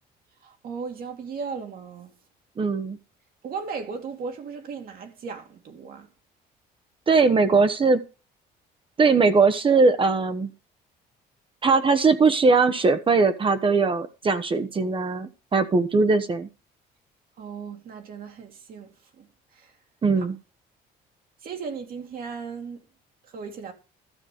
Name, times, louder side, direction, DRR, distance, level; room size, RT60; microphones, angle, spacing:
voice 1, 0.4-2.1 3.4-6.1 17.4-19.3 19.5-19.7 20.2-20.3 21.4-22.8 23.3-23.7, right 5 dB, 60° right, 2.4 m, -36 dB
voice 2, 2.6-3.0 7.1-8.0 9.0-10.5 11.6-16.5 20.0-20.4, right 4 dB, 30° right, 1.1 m, -20 dB
13.0 x 6.2 x 5.1 m
cardioid pair, 110°, 17 cm